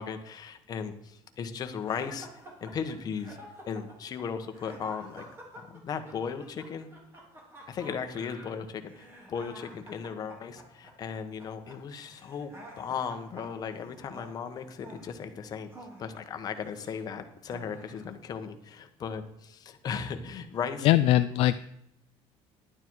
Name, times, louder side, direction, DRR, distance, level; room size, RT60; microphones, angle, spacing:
voice 1, 0.0-2.3 2.6-3.4 3.7-5.2 5.5-6.9 7.7-15.7 16.0-20.9, left 6 dB, 35° left, 7 dB, 1.2 m, -36 dB
sound 1, 1.9-17.0 17.5-18.2, right 1 dB, 25° right, 3.0 m, -49 dB
voice 2, 20.8-21.6, left 14 dB, 60° left, 12 dB, 0.4 m, -21 dB
11.5 x 9.6 x 4.7 m, 0.82 s
cardioid pair, 155°, 11 cm